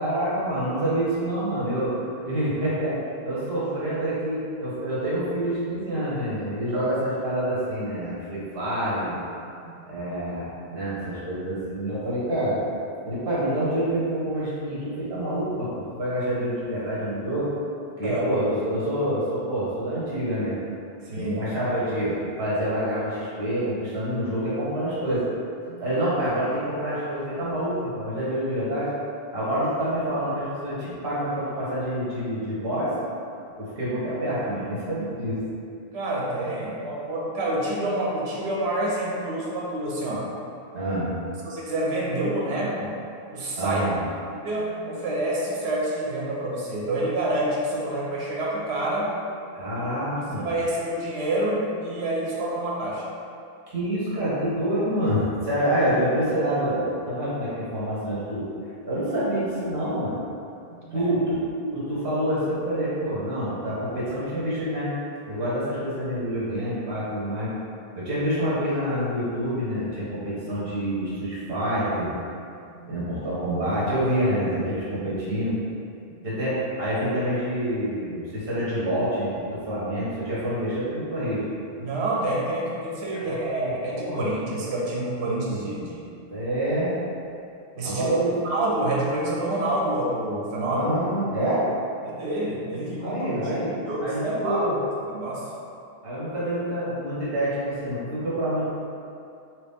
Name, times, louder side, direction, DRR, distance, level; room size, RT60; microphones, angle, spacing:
voice 1, 0.0-2.0 2.2-3.0 3.2-9.2 9.8-12.6 13.0-17.5 18.0-20.6 21.1-25.2 25.8-28.9 29.3-32.9 33.6-35.4 40.7-41.1 43.6-44.0 49.5-50.5 53.7-58.4 58.8-60.2 60.9-64.9 65.3-67.5 67.9-72.1 72.9-75.6 76.2-81.4 83.1-84.2 86.3-87.0 87.8-88.4 90.7-91.6 93.0-94.8 96.0-98.7, right 1 dB, 65° right, -9 dB, 1.3 m, -27 dB
voice 2, 9.6-10.0 18.0-18.3 21.0-21.4 25.7-25.8 35.9-40.3 41.4-43.0 43.3-43.8 44.3-49.1 50.2-53.1 60.7-61.1 72.6-72.9 74.3-74.4 76.1-76.2 81.8-86.1 87.8-88.1 88.4-90.9 92.0-93.3 93.8-94.6 95.1-95.5, right 1 dB, 85° right, -5 dB, 1.0 m, -28 dB
3.0 x 3.0 x 3.4 m, 2.5 s
omnidirectional pair, 1.1 m